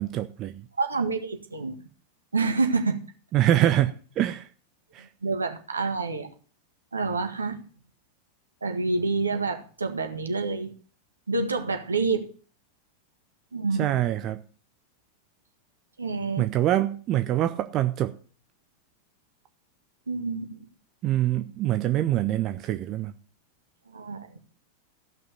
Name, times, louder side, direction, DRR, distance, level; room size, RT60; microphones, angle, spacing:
voice 1, 0.0-0.6 3.3-4.5 4.9-5.0 13.8-14.4 16.4-18.1 21.0-23.1, right 13 dB, 35° right, 0.7 m, -25 dB
voice 2, 0.8-1.8 2.3-3.0 5.0-6.3 6.9-7.6 8.6-10.7 11.3-12.3 13.5-13.9 16.0-16.4 20.1-20.6 23.9-24.4, right 3 dB, 75° right, 1.7 m, -28 dB
14.5 x 6.1 x 6.6 m
figure-of-eight pair, 90°, 0 cm